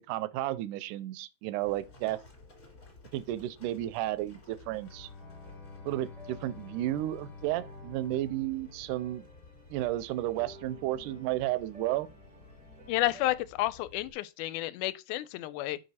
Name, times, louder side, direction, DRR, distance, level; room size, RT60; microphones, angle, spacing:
voice 1, 0.1-2.2 3.1-5.1 5.9-9.3 9.7-12.1, right 14 dB, 80° right, 2.0 m, -32 dB
Livestock farm animals working animals, 1.6-14.1, left 3 dB, 30° left, 2.1 m, -55 dB
Bowed string instrument, 4.6-9.9, left 4 dB, 45° left, 1.4 m, -50 dB
sound 1, 5.2-13.3, equal, 25° right, 0.8 m, -54 dB
voice 2, 12.9-15.8, left 16 dB, 80° left, 2.0 m, -31 dB
6.7 x 5.5 x 4.2 m
omnidirectional pair, 3.7 m